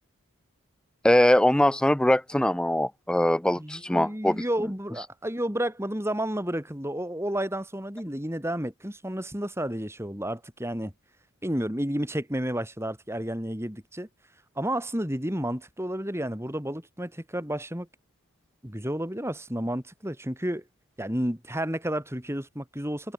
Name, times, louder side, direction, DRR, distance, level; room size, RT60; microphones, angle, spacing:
voice 1, 1.0-4.4, left 1 dB, 5° left, 0.3 m, -22 dB
voice 2, 3.6-10.9 11.4-14.1 14.6-17.9 18.6-20.6 21.0-23.1, right 1 dB, 10° right, 3.7 m, -31 dB
head